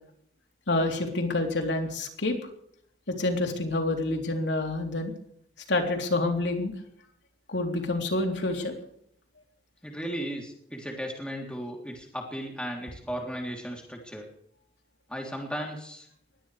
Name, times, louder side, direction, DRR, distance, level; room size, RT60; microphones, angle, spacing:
voice 1, 0.7-2.4 3.1-5.1 5.7-6.7 7.5-8.7, left 2 dB, 80° left, 2 dB, 3.6 m, -27 dB
voice 2, 9.8-14.3 15.1-16.1, equal, 5° left, 0 dB, 3.3 m, -36 dB
22.0 x 17.0 x 3.4 m, 0.68 s
head